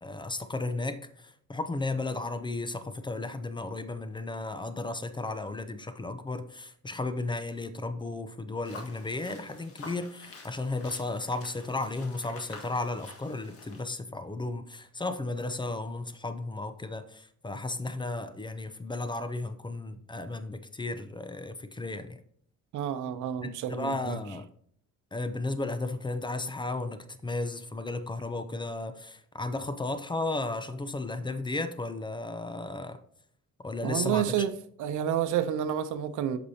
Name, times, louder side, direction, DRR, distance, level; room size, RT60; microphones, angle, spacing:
voice 1, 0.0-22.2 23.4-24.5 25.1-33.0 33.6-34.4, left 2 dB, 15° left, 0.5 m, -34 dB
sound 1, 8.6-13.8, left 3 dB, 50° left, 1.7 m, -48 dB
voice 2, 22.7-24.2 33.8-34.5 34.8-36.4, right 10 dB, 80° right, 0.7 m, -29 dB
8.3 x 6.0 x 2.8 m
cardioid pair, 120°, 30 cm